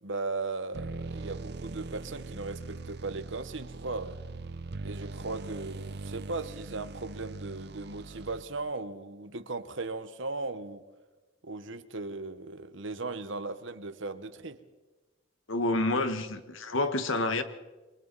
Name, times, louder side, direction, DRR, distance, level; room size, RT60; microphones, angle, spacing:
voice 1, 0.0-4.2 4.8-10.8 11.4-14.6, right 3 dB, 70° right, 10 dB, 1.2 m, -37 dB
sound 1, 0.7-8.7, right 3 dB, 50° right, 0.7 m, -41 dB
voice 2, 15.5-17.4, left 2 dB, 80° left, 9 dB, 1.5 m, -28 dB
29.5 x 23.0 x 4.1 m, 1.2 s
head